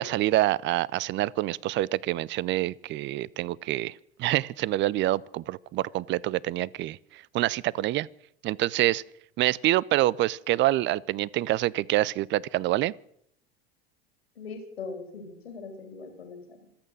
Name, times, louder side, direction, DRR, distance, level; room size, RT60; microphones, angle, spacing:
voice 1, 0.0-8.1 8.4-9.0 9.4-12.9, right 16 dB, 40° right, 0.6 m, -26 dB
voice 2, 14.4-16.7, left 4 dB, 85° left, 3.6 m, -41 dB
26.0 x 8.7 x 6.4 m
hypercardioid pair, 80°, 31 cm